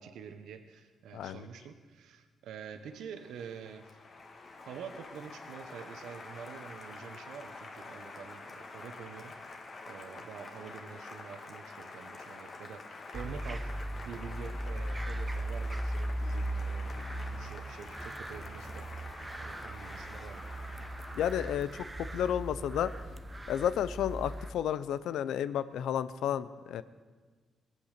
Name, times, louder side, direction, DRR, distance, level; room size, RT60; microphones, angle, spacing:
voice 1, 0.0-3.9 4.6-9.3 9.9-13.7 14.0-18.9 19.4-20.4, right 7 dB, 85° right, 8 dB, 1.1 m, -47 dB
Applause, 2.9-21.8, left 3 dB, 40° left, 1.7 m, -47 dB
sound 1, 13.1-24.5, right 1 dB, 15° right, 0.7 m, -38 dB
voice 2, 21.1-21.9 22.1-22.9 23.5-26.8, left 10 dB, 85° left, 15 dB, 0.6 m, -32 dB
21.0 x 8.6 x 6.7 m, 1.4 s
cardioid pair, 110°, 0 cm